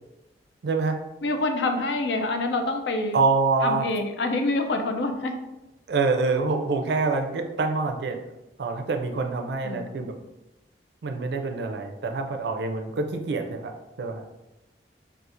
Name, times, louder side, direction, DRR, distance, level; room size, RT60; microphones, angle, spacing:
voice 1, 0.6-1.0 3.1-3.9 5.9-8.2 8.6-10.1 11.0-14.3, right 3 dB, 65° right, 5 dB, 0.4 m, -26 dB
voice 2, 1.2-3.2 3.6-5.3 9.6-10.1, left 2 dB, 75° left, 5 dB, 0.4 m, -26 dB
4.2 x 2.4 x 2.5 m, 0.96 s
head